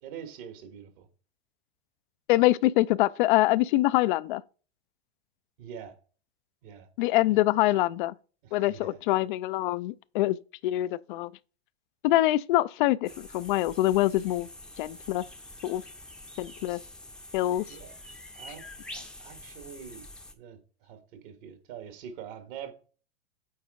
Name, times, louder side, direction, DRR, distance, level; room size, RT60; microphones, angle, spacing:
voice 1, 0.0-1.1 5.6-6.0 6.6-6.9 7.3-7.4 8.7-9.0 17.7-17.9 18.4-18.7 18.9-20.0 20.3-22.7, right 8 dB, 55° right, 1.7 m, -44 dB
voice 2, 2.3-4.4 7.0-8.1 8.5-10.4 10.6-11.3 12.0-14.5 14.8-15.2 15.6-15.8 16.4-16.8 17.3-17.7, left 16 dB, 55° left, 0.5 m, -24 dB
sound 1, 13.0-20.3, left 1 dB, 5° left, 0.7 m, -46 dB
8.6 x 4.3 x 3.6 m
hypercardioid pair, 100°, 31 cm